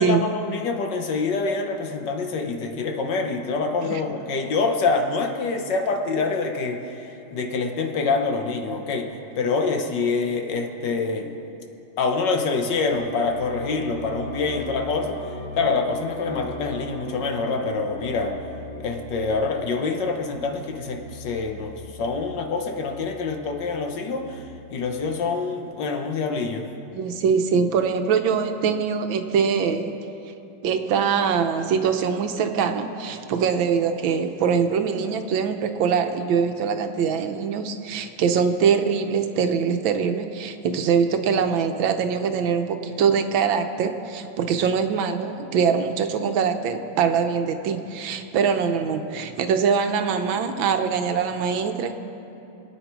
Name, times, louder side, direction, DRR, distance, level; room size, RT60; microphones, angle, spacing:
voice 1, 0.0-11.3 12.0-15.2 15.5-18.4 18.8-26.7, left 4 dB, 65° left, 4 dB, 1.6 m, -26 dB
sound 1, 12.9-24.5, left 1 dB, 40° left, 1.4 m, -40 dB
voice 2, 26.9-30.0 30.6-51.9, right 6 dB, 85° right, 7 dB, 1.6 m, -23 dB
26.5 x 9.1 x 4.7 m, 2.9 s
omnidirectional pair, 2.1 m